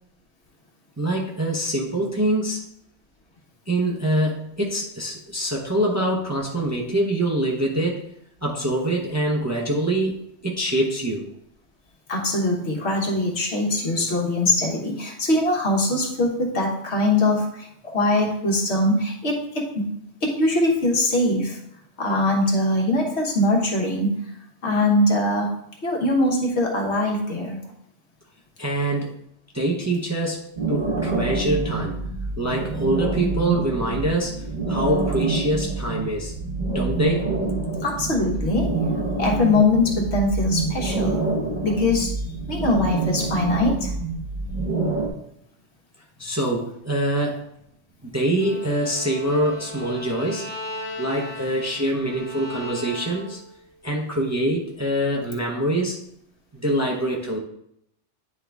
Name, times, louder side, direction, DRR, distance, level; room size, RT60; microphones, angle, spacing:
voice 1, 1.0-2.7 3.7-8.1 8.4-11.3 28.6-29.1 29.5-32.0 32.4-36.3 36.7-37.3 46.2-47.5 48.0-50.5 51.0-53.4 53.8-56.0 56.5-57.4, right 1 dB, 15° right, -2 dB, 0.7 m, -24 dB
voice 2, 12.1-19.9 20.2-21.6 22.0-24.2 24.6-25.5 25.8-27.6 37.8-38.7 39.2-41.2 41.6-42.2 42.5-43.9, left 2 dB, 65° left, -1 dB, 1.6 m, -22 dB
sound 1, 30.6-45.1, right 3 dB, 40° right, 1.1 m, -27 dB
Bowed string instrument, 48.4-53.6, left 1 dB, 25° left, 1.0 m, -37 dB
9.6 x 3.8 x 3.4 m, 0.74 s
omnidirectional pair, 1.2 m